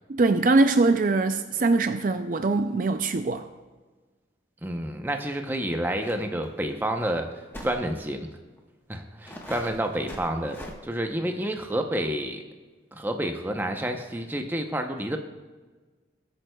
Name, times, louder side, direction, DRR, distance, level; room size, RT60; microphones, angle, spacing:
voice 1, 0.1-3.5, right 3 dB, 45° right, 9 dB, 0.4 m, -22 dB
voice 2, 4.6-8.3 8.9-12.4 12.9-15.2, right 1 dB, 10° right, 4 dB, 0.7 m, -29 dB
sound 1, 6.0-6.2 6.4-6.5 7.5-7.8 8.6-8.7 9.3-10.8, equal, 10° left, 1.2 m, -41 dB
21.0 x 8.9 x 2.3 m, 1.3 s
head